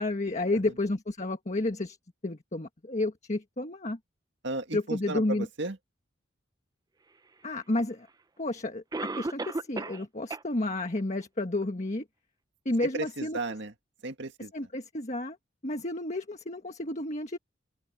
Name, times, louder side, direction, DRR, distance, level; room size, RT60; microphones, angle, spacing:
voice 1, 0.0-2.0 2.2-4.0 4.7-5.4 7.4-8.1 8.4-8.8 9.2-12.0 12.6-13.4 14.5-15.4 15.6-17.4, left 2 dB, 35° left, 1.5 m, -31 dB
voice 2, 4.4-5.8 12.8-13.7 14.0-14.7, right 2 dB, 65° right, 2.0 m, -35 dB
Cough, 7.8-7.9 8.9-10.0 10.3-10.4 11.0-11.1 11.6-11.7, right 3 dB, 20° right, 0.5 m, -33 dB
open air
head